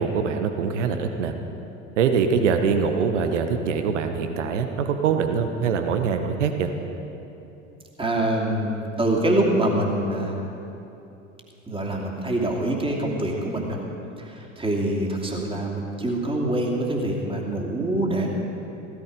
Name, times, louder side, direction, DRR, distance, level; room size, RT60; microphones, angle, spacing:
voice 1, 0.0-1.3 2.0-6.7, right 6 dB, 65° right, 7 dB, 1.1 m, -23 dB
voice 2, 8.0-10.4 11.7-13.8 14.2-18.3, right 1 dB, 15° right, -1 dB, 2.6 m, -25 dB
15.5 x 13.5 x 5.3 m, 2.9 s
figure-of-eight pair, 75°, 38 cm